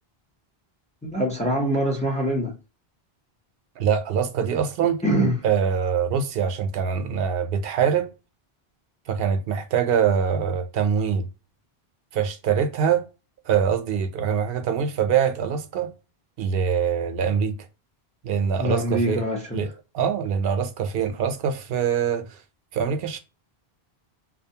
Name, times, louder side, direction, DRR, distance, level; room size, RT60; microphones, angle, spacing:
voice 1, 1.0-2.5 5.0-5.4 18.6-19.6, right 1 dB, 10° left, 0.5 m, -24 dB
voice 2, 3.8-5.0 5.4-8.1 9.1-11.3 12.1-13.0 13.5-15.9 16.4-17.5 18.2-19.2 19.5-19.7 19.9-22.4 22.7-23.2, right 7 dB, 70° right, 0.7 m, -24 dB
2.6 x 2.1 x 2.7 m
omnidirectional pair, 1.0 m